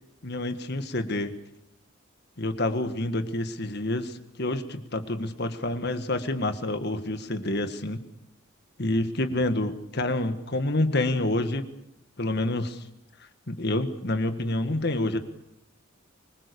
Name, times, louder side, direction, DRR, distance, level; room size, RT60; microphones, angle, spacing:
voice 1, 0.2-1.3 2.4-8.0 8.8-11.7 12.2-12.8 13.5-15.2, left 1 dB, 50° left, 9 dB, 1.7 m, -28 dB
24.5 x 21.5 x 6.9 m, 0.80 s
head